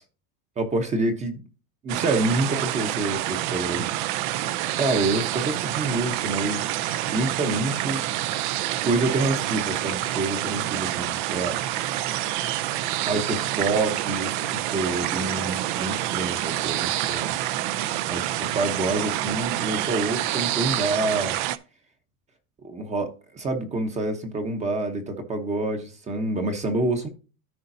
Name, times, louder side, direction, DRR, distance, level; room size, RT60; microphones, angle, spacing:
voice 1, 0.6-1.4 1.8-3.9 4.7-6.8 7.1-8.0 8.8-11.6 13.0-17.3 18.1-21.4 22.6-27.1, right 2 dB, 15° right, 0.8 m, -27 dB
sound 1, 1.9-21.6, right 14 dB, 35° right, 0.4 m, -27 dB
14.0 x 5.1 x 2.6 m
supercardioid pair, 165°, 44 cm